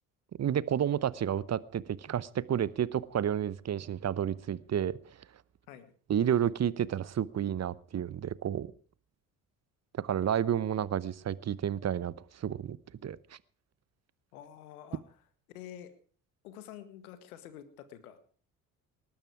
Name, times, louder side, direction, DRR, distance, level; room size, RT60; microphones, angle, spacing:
voice 1, 0.4-5.0 6.1-8.7 10.0-12.8 13.0-13.4, right 9 dB, 40° right, 1.0 m, -31 dB
voice 2, 14.3-15.0 15.5-15.9 16.4-18.2, left 11 dB, 85° left, 2.0 m, -48 dB
19.5 x 12.0 x 4.8 m
hypercardioid pair, 55°, 43 cm